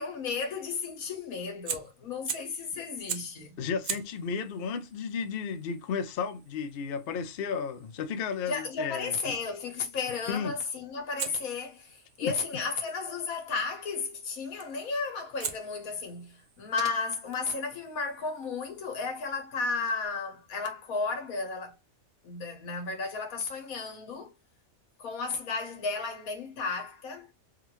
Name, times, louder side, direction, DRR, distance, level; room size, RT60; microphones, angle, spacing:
voice 1, 0.0-3.6 8.4-21.8 22.2-24.3 25.0-27.3, left 4 dB, 90° left, 1.5 m, -34 dB
Fire, 1.6-2.6 3.1-3.4 3.8-8.7 11.2-13.3 14.6-14.9 15.4-18.8, right 7 dB, 90° right, 0.4 m, -42 dB
voice 2, 3.6-9.3 10.3-10.5 12.2-12.3, left 6 dB, 60° left, 0.7 m, -33 dB
3.6 x 2.5 x 2.9 m
omnidirectional pair, 1.4 m